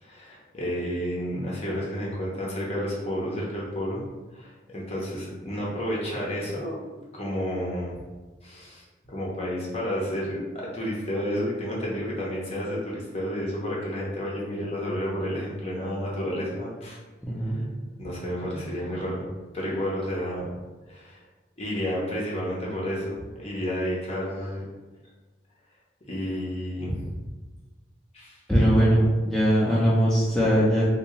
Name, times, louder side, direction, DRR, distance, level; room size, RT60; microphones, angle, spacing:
voice 1, 0.0-4.0 4.3-6.8 7.1-8.0 8.4-17.0 17.4-17.6 18.0-19.2 19.5-20.5 20.9-21.2 21.6-24.6 26.1-27.1 28.1-28.7, equal, 35° left, -4 dB, 0.8 m, -31 dB
voice 2, 17.2-17.6 28.5-30.8, equal, 5° left, -9 dB, 0.6 m, -21 dB
3.6 x 2.7 x 3.1 m, 1.2 s
head